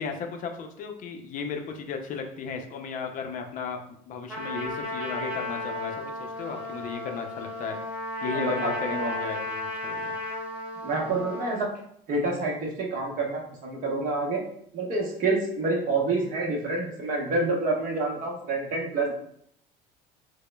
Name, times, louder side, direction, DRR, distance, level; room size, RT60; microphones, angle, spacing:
voice 1, 0.0-3.8 4.1-7.8 8.2-10.2, left 5 dB, 50° left, 4 dB, 0.6 m, -35 dB
Trumpet, 4.3-11.6, left 1 dB, 10° right, 0.9 m, -34 dB
voice 2, 8.3-9.1 10.8-11.7 12.1-14.4 14.7-19.1, right 3 dB, 50° right, -1 dB, 1.0 m, -28 dB
4.8 x 2.1 x 2.2 m, 0.68 s
supercardioid pair, 115°, 18 cm